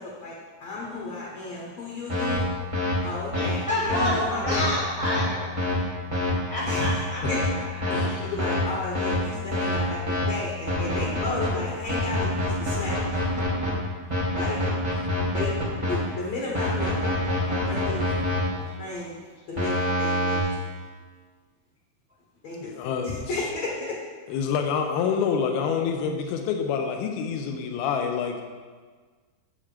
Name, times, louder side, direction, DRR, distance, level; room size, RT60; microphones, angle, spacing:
voice 1, 0.6-2.5 3.0-4.7 6.7-6.9 7.3-7.4 8.2-13.0 14.4-14.6 15.3-15.5 15.9-18.1 18.5-19.2 19.5-20.4 22.4-22.7 23.0-23.9, left 3 dB, 60° left, -4 dB, 1.9 m, -33 dB
sound 1, 2.1-2.4 2.7-2.9 3.3-3.5 3.9-4.0 4.5-4.6 5.0-5.2 5.6-5.7 6.1-6.3 6.7-6.9 7.2-7.4 7.8-8.0 8.4-8.6 8.9-9.2 9.5-9.8 10.1-10.2 10.7-11.5 11.9-13.7 14.1-15.9 16.5-18.4 19.6-20.4, left 1 dB, 25° right, 0.7 m, -26 dB
voice 2, 3.3-5.5 6.5-7.2 7.5-8.1, left 1 dB, 70° right, -9 dB, 0.4 m, -30 dB
voice 3, 7.9-8.3 14.9-15.1 22.6-23.5 24.3-28.4, left 6 dB, 80° left, 4 dB, 2.6 m, -27 dB
7.6 x 7.1 x 5.0 m, 1.5 s
omnidirectional pair, 4.5 m